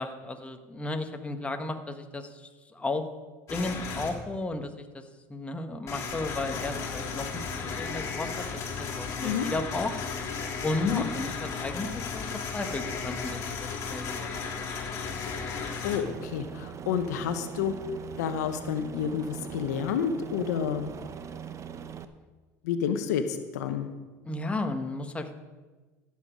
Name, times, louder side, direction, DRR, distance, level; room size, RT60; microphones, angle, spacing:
voice 1, 0.0-3.1 3.5-5.0 5.3-9.9 10.6-14.3 24.2-25.3, left 2 dB, 15° left, 6 dB, 1.2 m, -34 dB
sound 1, 3.5-4.1 5.9-16.0, left 5 dB, 40° left, 3.1 m, -35 dB
voice 2, 15.8-17.7 18.2-20.9 22.6-23.9, left 8 dB, 85° left, 8 dB, 0.9 m, -29 dB
Aircraft, 16.1-22.1, right 8 dB, 35° right, 0.8 m, -41 dB
15.5 x 7.0 x 5.1 m, 1.3 s
supercardioid pair, 90°, 9 cm